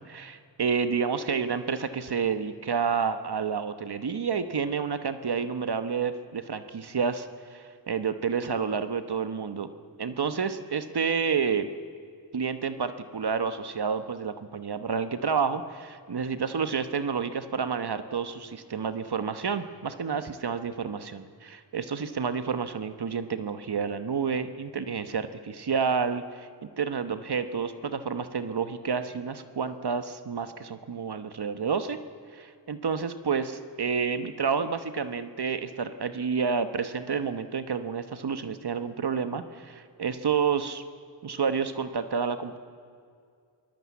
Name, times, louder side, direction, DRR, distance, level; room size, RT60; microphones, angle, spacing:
voice 1, 0.0-9.7 10.0-11.7 12.3-32.0 32.3-40.8 41.2-42.6, right 6 dB, 65° right, 10 dB, 1.2 m, -29 dB
24.0 x 19.5 x 8.4 m, 2.2 s
wide cardioid pair, 80°, 42 cm